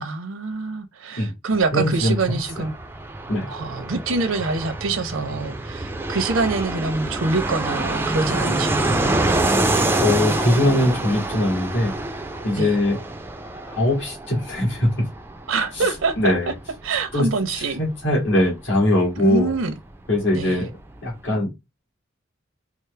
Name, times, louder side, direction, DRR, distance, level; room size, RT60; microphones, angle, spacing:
voice 1, 0.0-2.7 3.5-9.2 12.5-12.8 15.5-16.5 16.8-17.8 19.2-19.7 20.3-20.7, right 3 dB, 80° right, 0.7 m, -25 dB
Fixed-wing aircraft airplane, 1.5-19.9 20.2-20.3 20.5-21.2, right 2 dB, 10° right, 0.4 m, -27 dB
voice 2, 1.7-2.7 3.3-3.5 10.0-11.9 12.4-13.0 13.7-15.1 16.2-16.5 17.1-17.3 17.6-19.5 20.1-20.7 21.0-21.5, left 1 dB, 65° left, 1.9 m, -21 dB
4.5 x 2.1 x 3.2 m
head